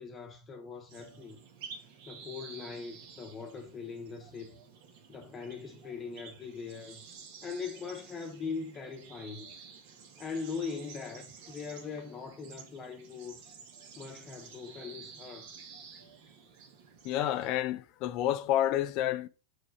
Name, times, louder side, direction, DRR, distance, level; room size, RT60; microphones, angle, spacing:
voice 1, 0.0-1.4 1.6-4.6 5.1-7.0 7.4-9.5 10.2-13.5 14.0-15.5, left 5 dB, 20° left, 1.0 m, -41 dB
sound 1, 0.9-17.6, right 6 dB, 50° right, 1.6 m, -51 dB
voice 2, 17.0-19.3, left 12 dB, 40° left, 0.4 m, -29 dB
6.7 x 4.7 x 4.5 m
figure-of-eight pair, 90°, 0 cm